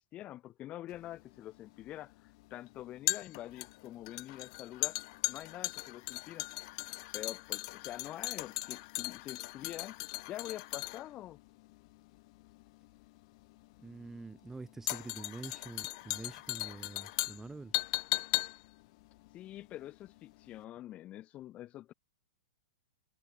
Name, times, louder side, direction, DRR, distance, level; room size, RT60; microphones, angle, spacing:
voice 1, 0.1-5.0 5.3-6.5 7.1-10.0 10.3-11.4 19.3-21.9, left 14 dB, 30° left, 2.3 m, -46 dB
sound 1, 0.9-20.2 20.5-20.6, left 23 dB, 45° left, 1.0 m, -38 dB
voice 2, 13.8-17.8, right 3 dB, 10° right, 2.2 m, -46 dB
figure-of-eight pair, 110°, 4 cm